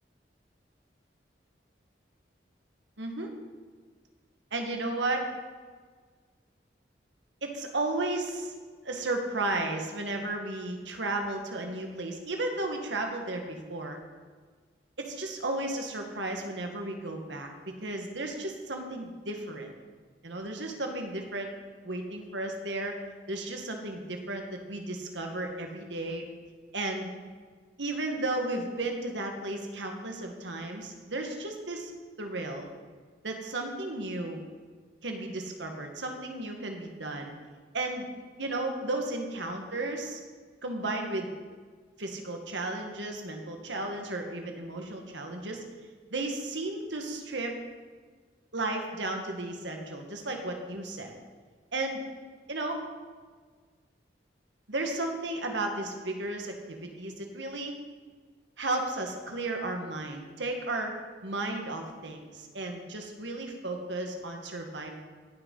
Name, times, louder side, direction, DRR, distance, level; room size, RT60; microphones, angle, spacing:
voice 1, 3.0-3.3 4.5-5.2 7.4-8.5 8.8-14.0 15.0-19.7 20.2-21.5 21.8-22.9 23.3-26.3 26.7-27.1 27.8-31.9 32.2-32.7 33.2-34.4 35.0-37.3 37.7-38.1 38.4-40.2 40.6-41.3 42.0-45.6 46.1-47.5 48.5-51.2 51.7-52.0 52.5-52.8 54.7-57.7 58.6-60.9 61.2-64.9, right 2 dB, 85° right, 3 dB, 1.8 m, -34 dB
17.5 x 6.5 x 5.5 m, 1.5 s
head